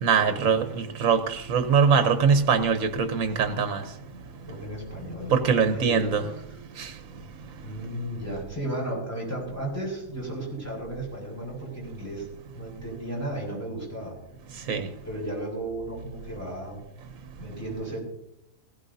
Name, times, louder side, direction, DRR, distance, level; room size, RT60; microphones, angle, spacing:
voice 1, 0.0-3.8 5.3-6.2 6.8-6.9 14.7-14.9, right 6 dB, 70° right, 1.3 m, -22 dB
voice 2, 4.5-5.4 5.7-6.3 7.6-12.3 12.5-14.2 15.0-16.8 17.4-18.0, right 1 dB, 10° left, 5.9 m, -34 dB
19.5 x 16.0 x 2.7 m
omnidirectional pair, 1.4 m